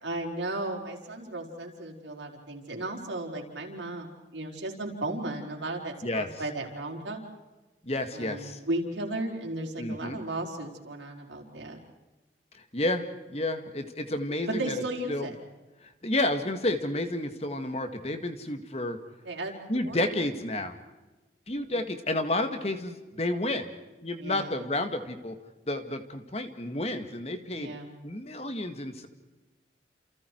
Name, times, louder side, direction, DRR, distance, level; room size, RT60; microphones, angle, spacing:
voice 1, 0.0-7.2 8.1-11.8 14.5-15.3 19.3-20.0 21.7-21.8 24.2-24.5 27.5-28.0, right 2 dB, 85° right, 0 dB, 5.0 m, -35 dB
voice 2, 7.8-8.6 9.8-10.2 12.5-14.8 15.1-15.3 15.8-19.0 19.7-20.8 21.5-23.7 24.0-25.4 25.7-27.7 28.0-29.1, left 1 dB, 35° left, 7 dB, 2.0 m, -31 dB
29.5 x 28.5 x 4.7 m, 1.1 s
head